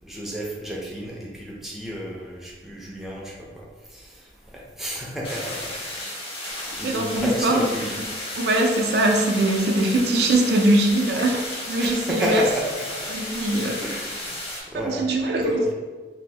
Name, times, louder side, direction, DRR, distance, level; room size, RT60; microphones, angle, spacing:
voice 1, 0.0-3.6 3.9-4.1 4.5-5.6 5.9-6.1 6.5-8.0 11.8-12.8 13.8-14.4 14.7-15.0 15.4-15.7, equal, ahead, -5 dB, 0.4 m, -31 dB
sound 1, 5.2-14.6, left 1 dB, 30° left, 0.7 m, -33 dB
voice 2, 6.8-7.7 8.3-12.4 13.1-13.8 14.7-15.7, right 1 dB, 70° right, 2 dB, 0.4 m, -22 dB
2.7 x 2.6 x 3.1 m, 1.3 s
head